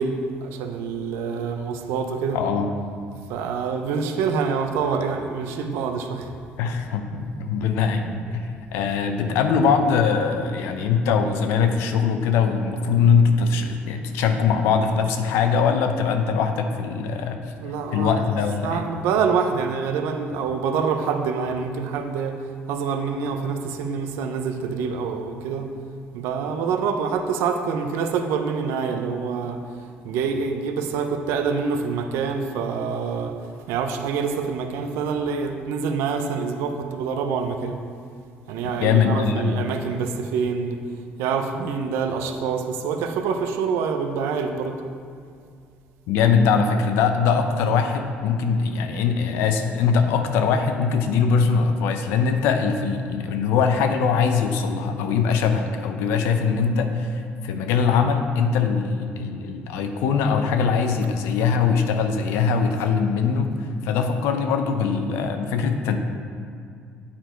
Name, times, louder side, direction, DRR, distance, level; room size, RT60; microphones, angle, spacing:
voice 1, 0.0-2.4 3.3-6.3 17.6-22.4 22.7-25.7 26.1-29.6 30.0-33.4 33.7-37.8 38.5-40.8 41.2-44.8, right 5 dB, 85° right, 6 dB, 0.6 m, -26 dB
voice 2, 2.3-2.7 6.6-17.4 17.9-18.9 38.8-39.6 46.1-63.5 63.8-66.0, left 6 dB, 85° left, 6 dB, 0.6 m, -22 dB
8.6 x 4.6 x 4.5 m, 2.3 s
cardioid pair, 120°, 4 cm